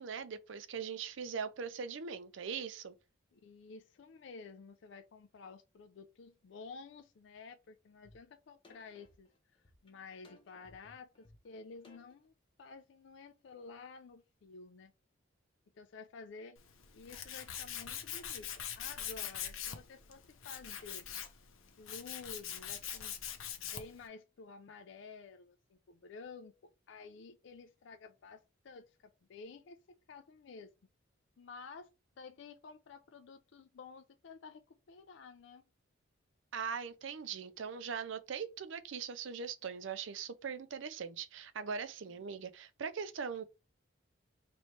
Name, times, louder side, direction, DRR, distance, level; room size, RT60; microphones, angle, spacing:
voice 1, 0.0-2.9 36.5-43.4, right 6 dB, 70° right, 0.5 m, -41 dB
voice 2, 3.3-9.3 9.8-14.9 15.7-16.6 16.9-21.1 21.8-23.2 23.6-30.7 31.4-31.9 32.2-35.6, left 4 dB, 65° left, 0.4 m, -52 dB
sound 1, 8.0-8.2 8.6-12.3, left 2 dB, 25° left, 0.7 m, -62 dB
Tools, 16.6-24.0, left 9 dB, 85° left, 0.7 m, -43 dB
3.1 x 2.9 x 4.2 m
head